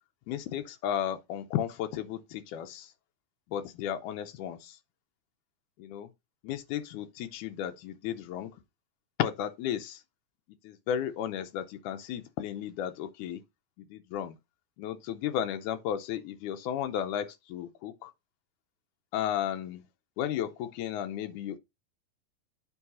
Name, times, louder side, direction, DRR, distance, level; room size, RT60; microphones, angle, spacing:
voice 1, 0.3-2.9 3.5-4.8 5.8-6.1 6.4-8.6 9.2-10.0 10.6-13.4 13.8-14.4 14.8-18.1 19.1-19.8 20.2-21.6, left 10 dB, 90° left, 1.8 m, -34 dB
9.4 x 3.3 x 4.1 m
omnidirectional pair, 4.2 m